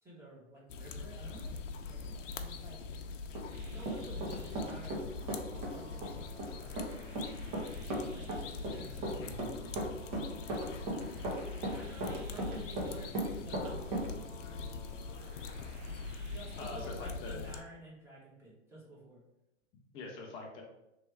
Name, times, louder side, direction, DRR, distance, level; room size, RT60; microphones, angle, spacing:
voice 1, 0.0-2.8 3.6-5.0 5.3-6.7 7.8-9.9 11.6-14.1 16.3-19.2, right 1 dB, 5° right, -6 dB, 1.3 m, -52 dB
sound 1, 0.7-17.6, left 4 dB, 80° left, 0.6 m, -43 dB
Run, 3.3-5.0 5.3-14.1, right 1 dB, 45° right, 1.5 m, -37 dB
sound 2, 3.5-16.8, right 2 dB, 65° right, 1.3 m, -56 dB
voice 2, 16.6-17.4 19.9-20.6, left 3 dB, 15° left, 0 dB, 0.4 m, -44 dB
3.3 x 3.2 x 4.5 m, 0.89 s
hypercardioid pair, 140°, 37 cm